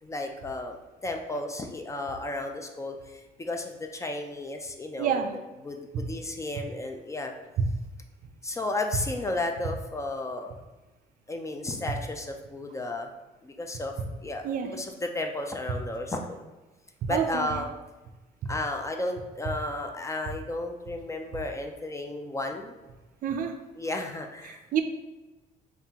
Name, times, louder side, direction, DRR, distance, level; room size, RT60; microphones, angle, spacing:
voice 1, 0.0-5.2 5.6-7.3 8.4-10.5 11.3-13.1 13.4-13.9 14.2-16.4 17.1-17.7 18.5-22.7 23.8-24.8, left 2 dB, 20° left, 4 dB, 0.3 m, -33 dB
voice 2, 5.0-5.3 5.9-6.0 7.6-7.7 14.4-14.7 17.0-17.5 18.4-18.5 23.2-23.5 24.5-24.8, right 7 dB, 55° right, 7 dB, 0.4 m, -28 dB
5.5 x 2.4 x 2.8 m, 1.1 s
cardioid pair, 110°, 17 cm